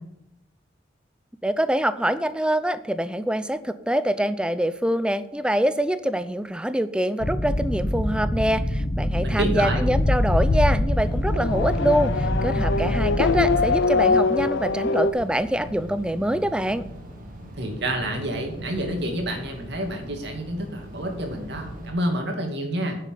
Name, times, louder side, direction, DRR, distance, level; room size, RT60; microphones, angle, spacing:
voice 1, 1.4-16.8, right 1 dB, 5° right, 13 dB, 0.5 m, -25 dB
sound 1, 7.2-13.8, equal, 40° left, 1.3 m, -25 dB
voice 2, 9.2-9.9 17.6-23.0, right 1 dB, 65° right, 3 dB, 2.6 m, -28 dB
Race car auto racing / Accelerating revving vroom, 9.9-15.1, left 3 dB, 70° left, 0.6 m, -23 dB
sound 2, 11.5-21.9, equal, 45° right, 2.6 m, -41 dB
9.8 x 7.6 x 6.8 m, 0.83 s
head